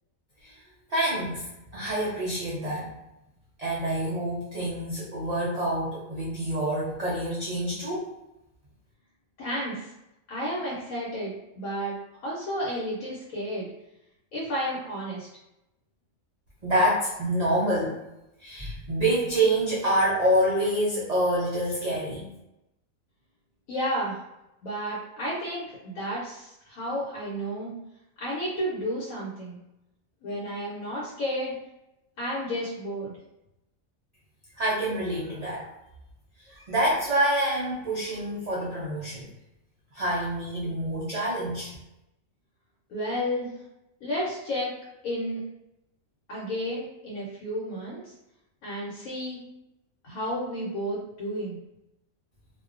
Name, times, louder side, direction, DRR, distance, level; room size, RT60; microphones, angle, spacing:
voice 1, 0.9-1.4 1.7-2.9 3.6-8.1 16.6-18.0 18.4-22.3 34.6-35.7 36.5-39.3 39.9-41.7, right 1 dB, 80° right, -6 dB, 0.3 m, -27 dB
voice 2, 9.4-9.9 10.3-12.0 12.2-13.7 14.3-15.3 23.7-24.2 24.6-27.7 28.2-29.6 30.2-31.5 32.2-33.1 42.9-43.5 44.0-44.7 45.0-45.4 46.3-48.1 48.6-49.4 50.0-51.6, equal, 80° left, -6 dB, 1.1 m, -32 dB
2.5 x 2.1 x 2.4 m, 0.90 s
omnidirectional pair, 1.4 m